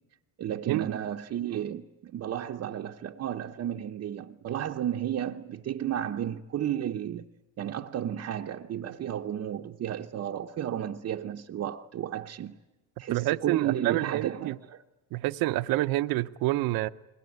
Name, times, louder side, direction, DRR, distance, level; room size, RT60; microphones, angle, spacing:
voice 1, 0.4-7.3 7.6-12.6 13.0-14.8, right 10 dB, 40° right, 0.9 m, -33 dB
voice 2, 13.1-14.6 15.1-16.9, right 17 dB, 70° right, 0.8 m, -28 dB
29.5 x 21.0 x 9.4 m
cardioid pair, 125°, 37 cm